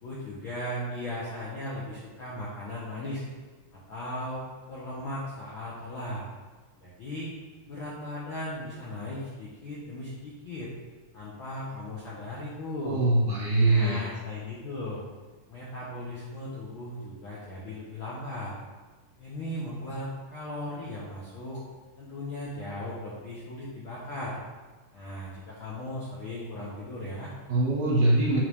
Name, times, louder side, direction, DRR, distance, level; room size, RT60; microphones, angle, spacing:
voice 1, 0.0-3.2 3.7-6.3 6.8-7.3 7.6-10.7 11.1-13.0 13.6-15.0 15.5-18.5 19.2-21.6 22.0-24.4 24.9-27.3, left 1 dB, 80° left, -7 dB, 1.1 m, -37 dB
voice 2, 12.8-14.0 27.5-28.4, right 2 dB, 80° right, -7 dB, 3.2 m, -23 dB
7.7 x 3.9 x 3.5 m, 1.3 s
omnidirectional pair, 3.7 m